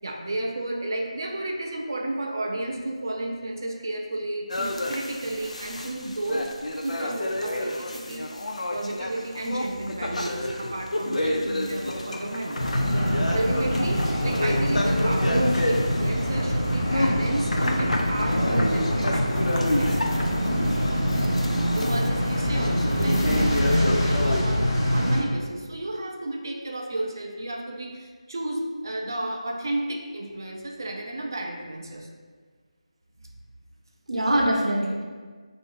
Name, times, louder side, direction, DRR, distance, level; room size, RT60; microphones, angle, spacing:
voice 1, 0.0-6.5 6.8-8.3 8.7-12.6 13.3-20.0 21.7-32.1, right 1 dB, 35° right, 1 dB, 0.4 m, -32 dB
sound 1, 4.5-24.4, left 1 dB, 80° left, 0.4 m, -30 dB
sound 2, 12.6-25.2, equal, 30° left, 0.5 m, -24 dB
voice 2, 12.8-13.4 15.3-15.5 23.1-23.7 34.1-35.0, right 1 dB, 70° right, -1 dB, 0.7 m, -26 dB
2.5 x 2.5 x 3.6 m, 1.5 s
figure-of-eight pair, 175°, 4 cm